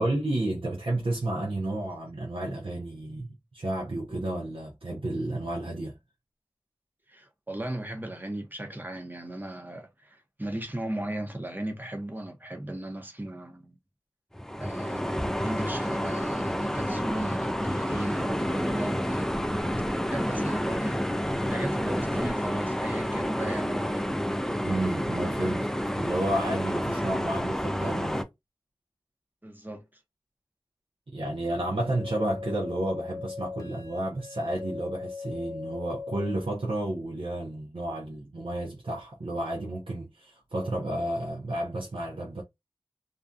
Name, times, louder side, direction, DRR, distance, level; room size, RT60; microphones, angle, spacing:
voice 1, 0.0-5.9 24.6-28.2 31.1-42.4, right 1 dB, 80° right, 0.6 m, -31 dB
voice 2, 7.1-13.8 14.6-19.3 20.1-21.0 21.5-24.1 29.4-29.9, right 1 dB, 20° right, 0.7 m, -36 dB
sound 1, 14.3-28.2, equal, 5° left, 0.4 m, -29 dB
sound 2, 31.6-36.6, left 5 dB, 40° left, 0.8 m, -40 dB
2.5 x 2.2 x 2.5 m
wide cardioid pair, 45°, 9 cm